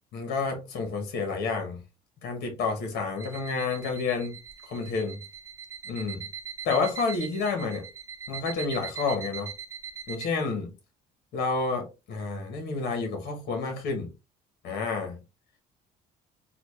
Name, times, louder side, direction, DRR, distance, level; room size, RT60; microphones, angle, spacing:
voice 1, 0.1-1.8 2.2-4.4 4.6-5.2 5.9-6.3 6.6-7.8 8.3-9.5 10.1-10.7 11.3-14.1 14.6-15.2, left 4 dB, 70° left, 1.3 m, -29 dB
sound 1, 3.2-10.3, right 7 dB, 15° right, 0.8 m, -41 dB
4.1 x 2.3 x 3.2 m
cardioid pair, 110°, 17 cm